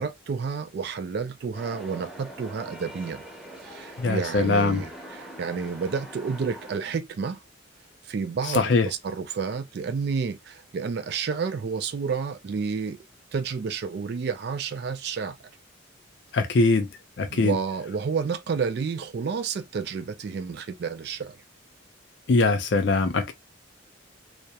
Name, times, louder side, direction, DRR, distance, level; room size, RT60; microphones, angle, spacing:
voice 1, 0.0-3.2 3.6-7.4 8.0-13.0 13.3-15.4 17.3-21.4, right 5 dB, 55° right, 0.3 m, -30 dB
sound 1, 1.5-6.8, right 1 dB, ahead, 1.0 m, -43 dB
voice 2, 4.0-4.8 8.5-8.9 16.3-16.9 17.2-17.6 22.3-23.3, left 3 dB, 60° left, 0.5 m, -22 dB
2.8 x 2.0 x 2.3 m
head